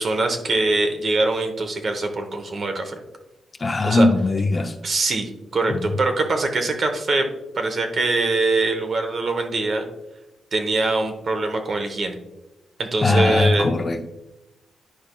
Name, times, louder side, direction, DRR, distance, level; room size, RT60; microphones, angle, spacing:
voice 1, 0.0-2.9 3.8-4.1 4.8-7.3 7.5-9.9 10.5-12.2 12.8-13.7, right 2 dB, 40° right, 6 dB, 0.9 m, -23 dB
voice 2, 3.6-4.7 5.7-5.9 13.0-14.0, left 2 dB, 25° left, 5 dB, 0.5 m, -20 dB
10.5 x 5.1 x 2.2 m, 0.96 s
wide cardioid pair, 145°, 0 cm